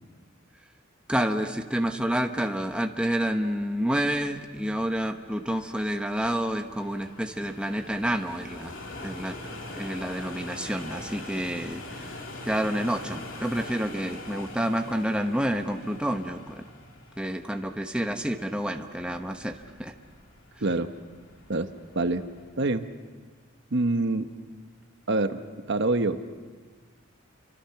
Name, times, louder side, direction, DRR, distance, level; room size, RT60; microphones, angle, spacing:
voice 1, 1.1-9.4 9.7-16.6 17.2-19.9, equal, 5° right, 5 dB, 1.0 m, -29 dB
sound 1, 4.3-22.6, left 2 dB, 70° left, 3.0 m, -43 dB
voice 2, 20.6-20.9 21.5-22.2 22.6-22.8 23.7-24.3 25.1-25.4 25.7-26.2, right 2 dB, 60° right, 9 dB, 1.0 m, -25 dB
30.0 x 25.0 x 5.8 m, 1.5 s
head